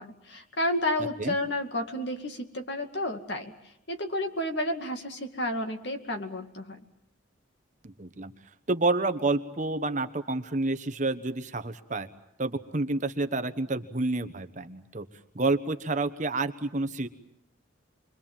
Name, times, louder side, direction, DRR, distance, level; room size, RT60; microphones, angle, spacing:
voice 1, 0.0-3.5 3.9-6.8, left 1 dB, 55° left, 6 dB, 2.3 m, -31 dB
voice 2, 7.8-8.3 8.7-12.1 12.4-15.1 15.3-17.1, right 2 dB, 35° right, 9 dB, 1.1 m, -29 dB
28.5 x 23.0 x 7.4 m, 0.79 s
head